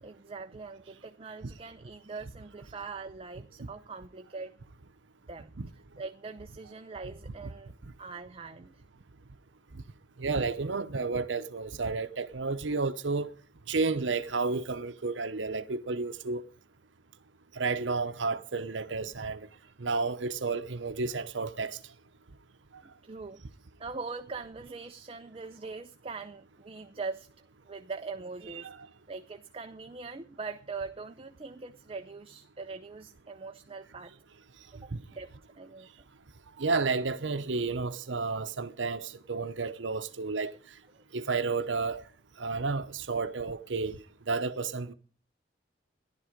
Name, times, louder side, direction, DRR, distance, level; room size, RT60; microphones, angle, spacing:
voice 1, 0.0-4.5 5.3-5.5 6.0-8.8 22.8-23.4 23.8-27.3 27.6-28.7 29.1-34.1 34.7-35.3 35.5-35.9, right 4 dB, 30° right, 0.6 m, -42 dB
voice 2, 10.2-13.3 13.7-16.4 17.5-19.4 19.8-21.8 28.6-28.8 34.9-35.0 36.6-40.5 41.1-42.0 42.4-44.9, right 4 dB, 80° right, 0.8 m, -31 dB
14.5 x 11.5 x 5.1 m
head